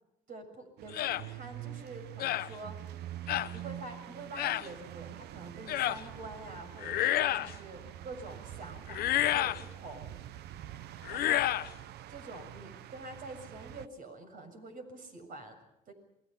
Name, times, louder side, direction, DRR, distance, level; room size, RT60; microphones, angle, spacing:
voice 1, 0.3-2.8 3.5-10.1 11.1-11.5 12.1-15.6 15.9-16.0, right 2 dB, 55° right, 7 dB, 7.1 m, -46 dB
sound 1, 0.8-13.9, right 12 dB, 75° right, 0.9 m, -46 dB
sound 2, 0.9-1.2 2.2-2.5 3.3-3.5 4.4-4.7 5.7-6.0 6.8-7.5 8.9-9.6 11.0-11.7, left 13 dB, 65° left, 0.9 m, -29 dB
28.5 x 22.5 x 5.7 m, 0.86 s
cardioid pair, 110°, 17 cm